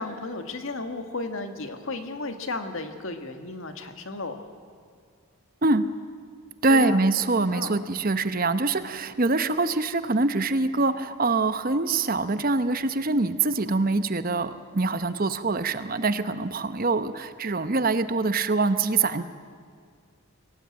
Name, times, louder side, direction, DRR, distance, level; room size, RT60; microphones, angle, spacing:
voice 1, 0.0-4.4 6.7-7.0 7.5-7.7, left 3 dB, 65° left, 7 dB, 1.9 m, -34 dB
voice 2, 6.6-19.2, right 3 dB, 40° right, 12 dB, 0.8 m, -24 dB
23.0 x 18.0 x 8.8 m, 2.2 s
head